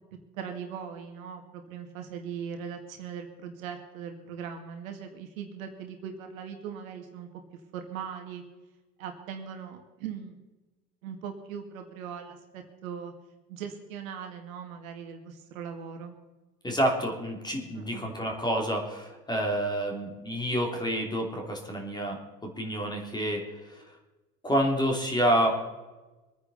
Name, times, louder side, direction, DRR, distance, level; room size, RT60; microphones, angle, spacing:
voice 1, 0.3-8.4 9.0-10.4 11.0-13.1 13.5-16.1 17.8-18.1, right 7 dB, 55° right, 5 dB, 2.0 m, -40 dB
voice 2, 16.6-23.8 24.4-25.5, equal, 10° left, 2 dB, 2.9 m, -28 dB
24.0 x 9.6 x 4.1 m, 1.2 s
figure-of-eight pair, 85°, 49 cm